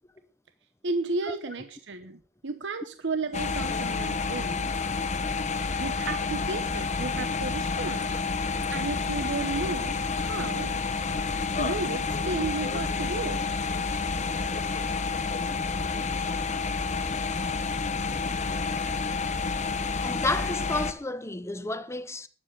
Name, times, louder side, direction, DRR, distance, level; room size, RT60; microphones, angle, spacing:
voice 1, 0.8-4.7 5.8-8.1 8.4-10.0 10.3-10.7 11.6-13.4, right 3 dB, 65° right, 1.0 m, -33 dB
sound 1, 3.3-20.9, left 4 dB, 40° left, 1.2 m, -29 dB
voice 2, 20.0-22.3, left 2 dB, 15° left, 1.0 m, -31 dB
12.5 x 9.6 x 6.5 m
head